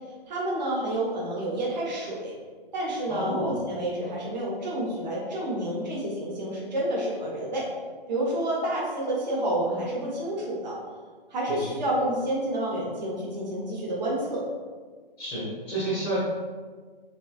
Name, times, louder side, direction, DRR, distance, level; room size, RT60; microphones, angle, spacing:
voice 1, 0.3-2.3 2.7-7.7 8.1-10.8 11.3-14.4, right 1 dB, 50° right, -4 dB, 1.1 m, -29 dB
voice 2, 3.1-3.6 11.5-11.8 15.2-16.2, right 1 dB, 5° left, -9 dB, 0.7 m, -30 dB
3.4 x 2.6 x 2.5 m, 1.4 s
figure-of-eight pair, 125°, 29 cm